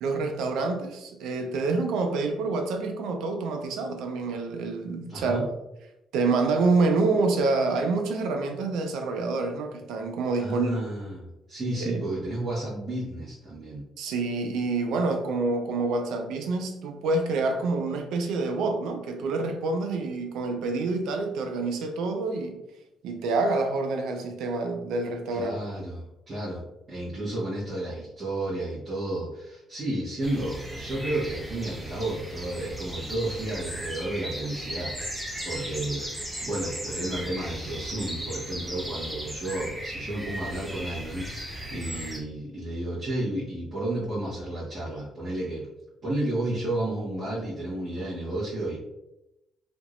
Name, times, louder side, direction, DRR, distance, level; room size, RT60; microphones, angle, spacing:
voice 1, 0.0-5.5 6.1-10.8 11.8-12.1 14.0-22.6 23.0-25.6, right 3 dB, 85° right, 4 dB, 0.5 m, -27 dB
voice 2, 5.1-5.4 10.4-13.8 25.3-45.7 46.0-48.8, right 1 dB, 40° right, -10 dB, 1.4 m, -32 dB
sound 1, 30.2-42.2, equal, 15° right, 1.0 m, -36 dB
3.5 x 2.9 x 2.5 m, 0.91 s
cardioid pair, 90°, 0 cm